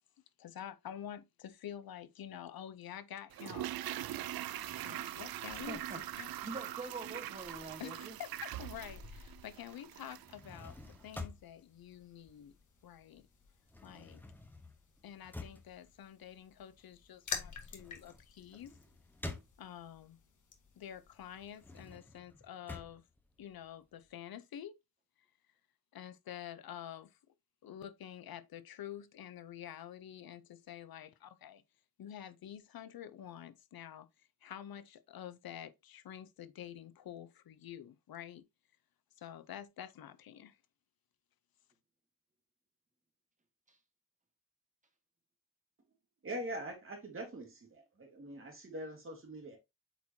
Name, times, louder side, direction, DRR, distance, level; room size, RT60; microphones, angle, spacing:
voice 1, 0.4-3.7 4.8-5.8 6.2-6.3 7.8-10.8 11.0-12.5 12.8-13.3 13.8-14.2 15.0-18.7 19.6-20.2 20.8-23.0 23.4-24.8 25.9-27.2 27.6-31.6 32.0-34.1 34.4-38.4 39.2-40.6, left 10 dB, 80° left, 0.8 m, -48 dB
Toilet flush, 3.3-10.4 10.7-10.8, right 13 dB, 80° right, 0.5 m, -42 dB
sound 1, 4.2-22.0, left 6 dB, 55° left, 1.5 m, -52 dB
voice 2, 5.7-6.0 6.4-8.2 43.7-43.8, right 3 dB, 20° right, 1.4 m, -44 dB
sound 2, 10.2-13.0 13.3-20.1 20.5-24.1, left 2 dB, 5° left, 1.0 m, -50 dB
voice 3, 46.2-49.6, right 1 dB, 35° right, 2.5 m, -43 dB
8.0 x 4.4 x 2.8 m
wide cardioid pair, 160°, 35 cm